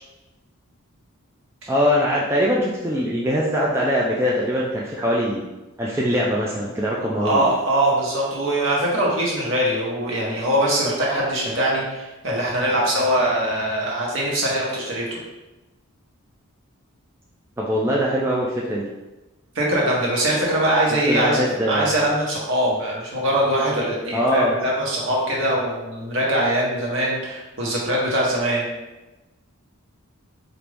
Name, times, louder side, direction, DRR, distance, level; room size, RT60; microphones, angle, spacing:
voice 1, 1.7-5.4 5.8-7.4 17.6-18.9 21.1-22.0 24.1-24.5, equal, 10° right, -4 dB, 0.3 m, -22 dB
voice 2, 7.2-15.2 19.5-28.7, right 1 dB, 60° right, -4 dB, 1.1 m, -22 dB
4.4 x 2.5 x 3.4 m, 1.1 s
head